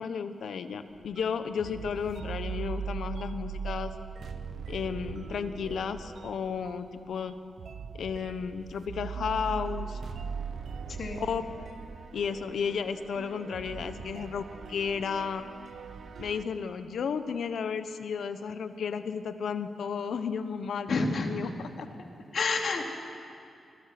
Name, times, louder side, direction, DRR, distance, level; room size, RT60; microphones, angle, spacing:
voice 1, 0.0-3.9 4.7-7.3 8.0-10.0 11.2-11.4 12.1-15.5 16.2-21.7, left 6 dB, 75° left, 9 dB, 1.2 m, -33 dB
sound 1, 0.9-16.4, right 6 dB, 65° right, 1.0 m, -40 dB
voice 2, 10.9-11.2 20.9-21.3 22.3-22.8, left 3 dB, 55° left, 2 dB, 2.8 m, -28 dB
27.5 x 22.0 x 6.1 m, 2.5 s
wide cardioid pair, 130°, 0 cm